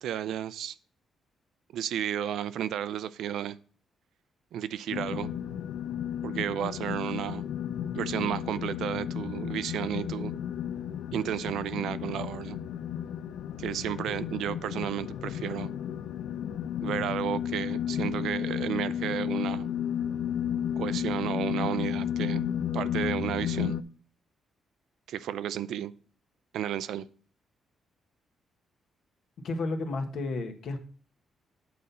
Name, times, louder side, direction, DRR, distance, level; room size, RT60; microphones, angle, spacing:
voice 1, 0.0-0.7 1.7-3.6 4.5-5.3 6.2-7.4 7.9-10.3 11.1-12.6 13.6-15.7 16.8-19.7 20.8-22.4 22.7-23.8 25.1-25.9 26.5-27.1, right 10 dB, 75° right, 15 dB, 0.4 m, -32 dB
sound 1, 4.9-23.8, left 9 dB, 85° left, 0.4 m, -33 dB
voice 2, 29.4-30.8, left 3 dB, 60° left, 6 dB, 1.3 m, -32 dB
8.6 x 4.2 x 5.4 m, 0.43 s
cardioid pair, 170°, 0 cm